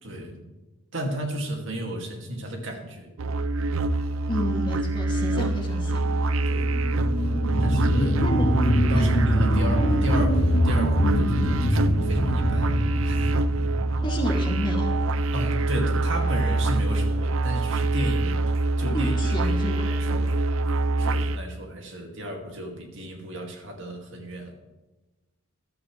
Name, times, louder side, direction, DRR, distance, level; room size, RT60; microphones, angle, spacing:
voice 1, 0.0-0.5 0.9-3.1 6.5-6.7 7.6-8.2 8.9-13.3 15.3-18.4 18.8-19.2 19.4-19.5 19.8-20.4 21.0-24.6, right 1 dB, 65° right, 2 dB, 2.3 m, -33 dB
sound 1, 3.2-21.4, right 2 dB, 85° right, 0.6 m, -25 dB
voice 2, 4.2-6.2 8.1-8.5 8.9-9.2 14.0-15.0 18.9-19.9, left 1 dB, 25° left, 0 dB, 2.4 m, -31 dB
sound 2, 6.4-15.5 16.0-16.1, equal, 90° left, 2.1 m, -25 dB
14.5 x 12.5 x 3.2 m, 1.1 s
head